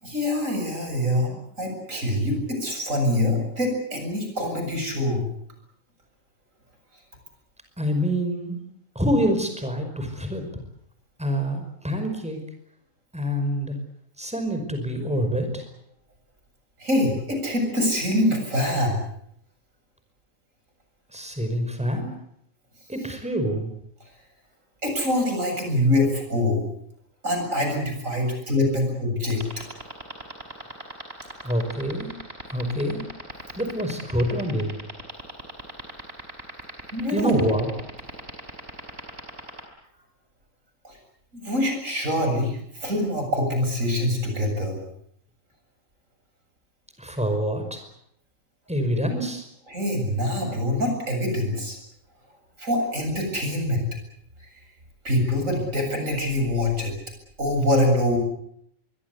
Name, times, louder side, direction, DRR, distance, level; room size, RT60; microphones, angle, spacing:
voice 1, 0.0-5.3 16.8-19.0 24.8-26.6 27.2-29.4 36.9-37.6 40.8-41.0 41.3-44.8 49.7-51.8 52.6-53.9 54.4-54.5 55.0-56.9 57.4-58.2, left 1 dB, 80° right, 4 dB, 7.8 m, -24 dB
voice 2, 7.8-8.6 9.0-10.4 11.2-12.4 13.1-13.8 14.2-15.7 21.1-22.1 22.9-23.7 31.4-32.1 32.5-33.0 33.6-34.8 37.1-37.7 47.0-47.9 48.7-49.5, equal, 5° right, 6 dB, 5.4 m, -26 dB
sound 1, 29.3-39.6, right 1 dB, 50° right, 5.3 m, -37 dB
25.5 x 23.0 x 8.4 m, 0.72 s
omnidirectional pair, 1.3 m